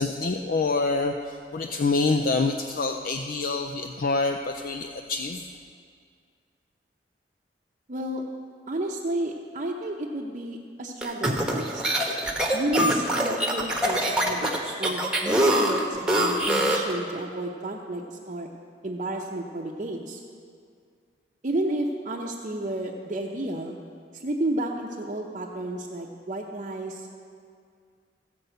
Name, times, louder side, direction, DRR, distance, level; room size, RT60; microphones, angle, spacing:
voice 1, 0.0-5.4, left 3 dB, 55° left, 5 dB, 0.5 m, -26 dB
voice 2, 7.9-8.2 8.7-11.8 12.5-18.5 18.8-20.2 21.4-23.8 24.1-27.1, right 1 dB, 40° right, -2 dB, 0.7 m, -31 dB
sound 1, 11.0-16.9, right 1 dB, 5° right, 1.1 m, -24 dB
15.0 x 5.3 x 7.9 m, 2.2 s
head